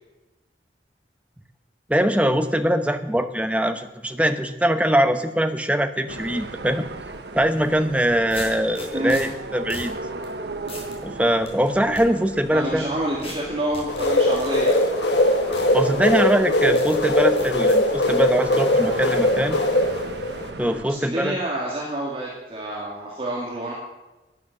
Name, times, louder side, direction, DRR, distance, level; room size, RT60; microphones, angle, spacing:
voice 1, 1.9-6.8 7.3-9.9 11.0-12.9 15.7-19.6 20.6-21.4, equal, 10° right, 7 dB, 0.9 m, -22 dB
sound 1, 6.1-20.8, right 2 dB, 75° right, 1.1 m, -36 dB
sound 2, 7.5-7.7 8.3-9.2 9.7-9.9 10.2-10.3 10.7-11.0 11.5-12.0 13.2-13.3 13.7-14.8 15.5-15.7 16.3-16.4 16.8-17.0 17.4-17.8, left 2 dB, 35° left, 4.4 m, -38 dB
voice 2, 12.5-14.8 20.8-23.7, right 1 dB, 30° right, -5 dB, 2.5 m, -28 dB
sound 3, 13.9-20.5, left 1 dB, 85° left, 1.5 m, -20 dB
12.0 x 10.0 x 9.7 m, 1.1 s
head